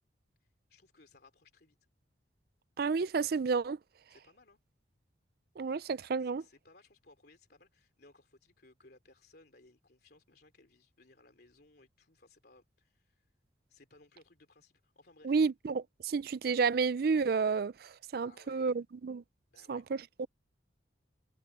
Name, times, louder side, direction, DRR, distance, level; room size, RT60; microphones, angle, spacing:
voice 1, 0.7-1.9 4.1-4.6 6.2-13.3 13.7-15.4 18.2-18.8 19.5-19.9, left 2 dB, 55° left, 3.2 m, -62 dB
voice 2, 2.8-3.8 5.6-6.4 15.2-19.2 19.7-20.3, right 5 dB, 55° right, 0.4 m, -31 dB
head